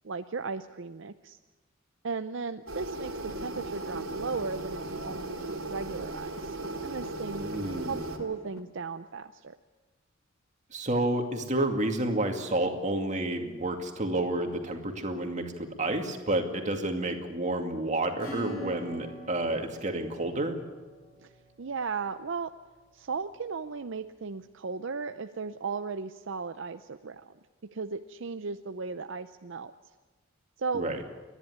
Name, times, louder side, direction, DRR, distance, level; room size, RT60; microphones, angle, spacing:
voice 1, 0.0-1.4 2.0-6.6 6.8-7.5 7.9-9.5 21.2-21.3 21.6-22.5 22.9-27.3 27.6-29.7 30.6-30.8, right 4 dB, 60° right, 9 dB, 0.6 m, -36 dB
sound 1, 2.7-8.2, right 2 dB, 80° right, 2.6 m, -37 dB
sound 2, 3.0-8.6, left 1 dB, 90° left, 2.6 m, -49 dB
voice 2, 7.4-8.0 10.7-20.6 30.7-31.0, right 1 dB, 35° right, 4 dB, 2.3 m, -30 dB
Acoustic guitar / Strum, 18.2-22.5, right 1 dB, 45° left, 7.6 m, -44 dB
29.5 x 11.0 x 9.7 m, 1.3 s
head